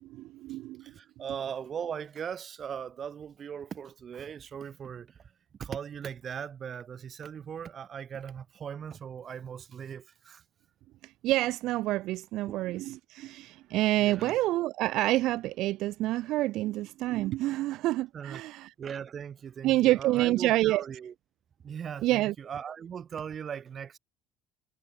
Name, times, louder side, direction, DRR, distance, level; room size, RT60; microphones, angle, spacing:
voice 1, 0.0-0.8 11.0-18.7 19.6-20.8 22.0-22.3, right 16 dB, 70° right, 1.3 m, -28 dB
voice 2, 0.8-5.3 5.6-10.4 12.5-12.6 14.0-14.4 18.1-18.4 18.8-21.1 21.6-24.0, right 7 dB, 40° right, 3.9 m, -39 dB
supercardioid pair, 90°, 0 cm